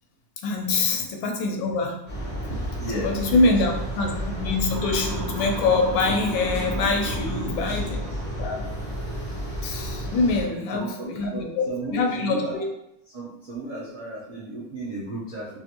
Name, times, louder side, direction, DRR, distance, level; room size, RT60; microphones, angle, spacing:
voice 1, 0.4-2.0 2.5-8.0 8.4-8.6 9.6-11.6 11.9-12.7, left 3 dB, 80° left, 2 dB, 1.3 m, -25 dB
sound 1, 2.1-10.4, equal, 15° left, 0.3 m, -32 dB
voice 2, 2.8-3.8 7.2-7.9 10.4-12.6 13.1-15.6, right 1 dB, 75° right, -9 dB, 0.4 m, -35 dB
Motor vehicle (road) / Siren, 4.7-8.8, right 1 dB, 55° right, 1.2 m, -36 dB
3.4 x 2.5 x 2.8 m, 0.82 s
omnidirectional pair, 2.2 m